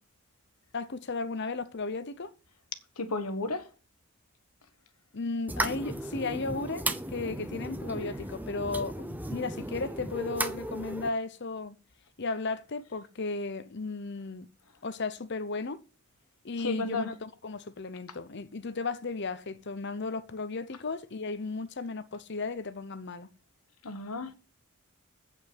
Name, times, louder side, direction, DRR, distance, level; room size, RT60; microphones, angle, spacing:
voice 1, 0.7-2.3 5.1-11.8 12.2-14.5 14.8-15.8 16.4-23.3, left 3 dB, 50° left, 0.8 m, -35 dB
voice 2, 3.0-3.6 16.6-17.1 23.8-24.3, left 2 dB, 90° left, 1.3 m, -32 dB
sound 1, 5.5-11.1, right 1 dB, 10° right, 0.7 m, -35 dB
8.6 x 5.5 x 7.7 m
head